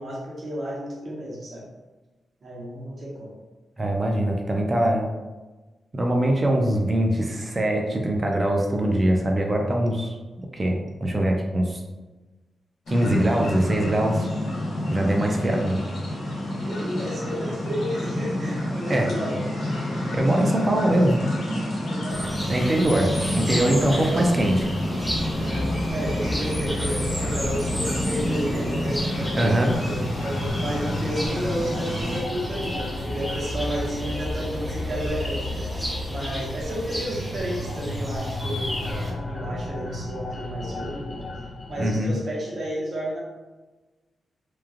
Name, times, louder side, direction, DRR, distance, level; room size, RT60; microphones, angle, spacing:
voice 1, 0.0-1.7 2.4-3.4 16.6-19.4 19.7-20.1 21.8-22.7 24.0-24.3 25.4-41.3 41.7-43.2, equal, 55° right, -4 dB, 0.9 m, -32 dB
voice 2, 3.8-5.1 5.9-11.8 12.9-14.3 14.9-15.8 18.9-19.1 20.1-21.2 22.5-24.7 29.4-29.7 41.8-42.1, right 1 dB, 30° right, 1 dB, 0.5 m, -22 dB
sound 1, 12.9-32.2, left 1 dB, 85° left, 1.0 m, -29 dB
sound 2, 22.1-39.1, equal, ahead, 0.9 m, -33 dB
sound 3, 25.0-42.0, left 2 dB, 45° left, 0.4 m, -33 dB
3.0 x 2.3 x 2.4 m, 1.2 s
cardioid pair, 70°, 0 cm